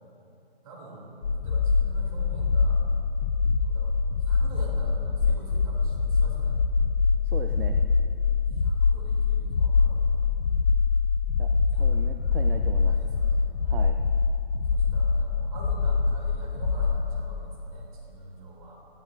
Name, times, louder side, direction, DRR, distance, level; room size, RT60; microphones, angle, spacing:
voice 1, 0.6-2.8 3.6-3.9 4.2-6.6 8.5-10.2 11.7-12.4 12.9-13.5 14.7-18.8, right 2 dB, 35° right, -3 dB, 3.0 m, -45 dB
sound 1, 1.2-17.1, left 4 dB, 70° left, 1.0 m, -24 dB
voice 2, 7.3-7.8 11.4-12.9 13.6-14.0, right 7 dB, 60° right, 6 dB, 0.6 m, -38 dB
18.5 x 13.0 x 2.6 m, 2.9 s
hypercardioid pair, 160°, 32 cm